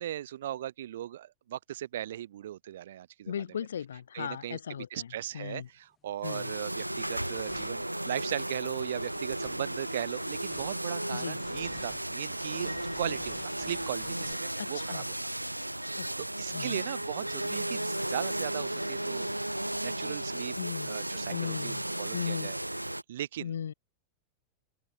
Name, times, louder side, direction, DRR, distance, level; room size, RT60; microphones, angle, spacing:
voice 1, 0.0-3.3 4.1-4.6 4.9-15.2 16.2-19.3 19.8-20.5 20.9-22.6 23.1-23.5, right 12 dB, 60° right, 0.7 m, -38 dB
voice 2, 3.3-5.7 6.2-6.5 11.1-11.4 14.6-15.1 15.9-16.1 16.5-16.8 20.6-20.9 21.3-21.8 22.1-22.5 23.4-23.7, left 8 dB, 65° left, 0.3 m, -37 dB
sound 1, 5.5-5.6 6.1-14.3, left 8 dB, 25° left, 1.2 m, -56 dB
sound 2, 6.2-23.0, right 1 dB, 85° right, 0.4 m, -35 dB
open air
figure-of-eight pair, 90°, 0 cm